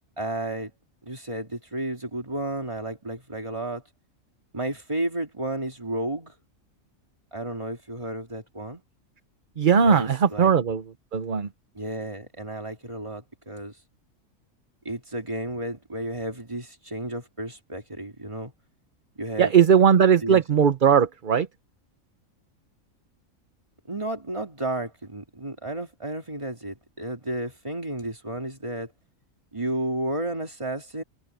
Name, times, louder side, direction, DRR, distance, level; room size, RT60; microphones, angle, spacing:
voice 1, 0.2-0.7 1.0-3.8 4.5-6.3 7.3-8.8 9.8-10.5 11.7-13.7 14.8-18.5 19.2-19.6 20.2-20.4 23.9-28.9 29.5-31.0, right 1 dB, 20° right, 2.7 m, -32 dB
voice 2, 9.6-10.8 11.1-11.5 19.4-21.5, right 7 dB, 40° right, 0.9 m, -19 dB
omnidirectional pair, 1.4 m